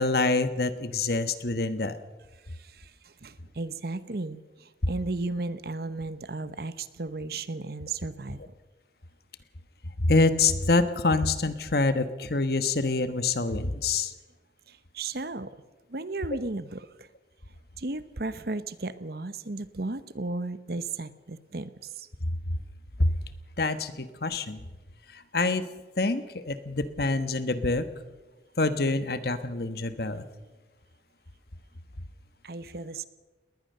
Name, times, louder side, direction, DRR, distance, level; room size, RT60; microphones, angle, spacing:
voice 1, 0.0-2.0 10.0-14.1 23.0-23.1 23.6-24.6 25.1-25.6 26.0-27.8 28.6-30.2, left 3 dB, 55° left, 11 dB, 1.2 m, -26 dB
voice 2, 2.5-8.4 14.7-15.5 15.9-17.1 17.8-22.1 30.1-30.3 32.4-33.1, right 3 dB, 55° right, 14 dB, 0.9 m, -35 dB
20.0 x 19.5 x 6.7 m, 1.2 s
head